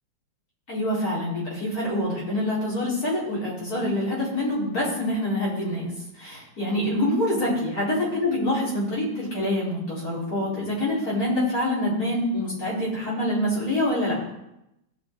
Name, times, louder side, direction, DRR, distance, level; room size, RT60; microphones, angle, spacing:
voice 1, 0.7-14.2, left 1 dB, 50° left, -7 dB, 4.8 m, -26 dB
17.0 x 6.0 x 4.6 m, 0.85 s
omnidirectional pair, 2.0 m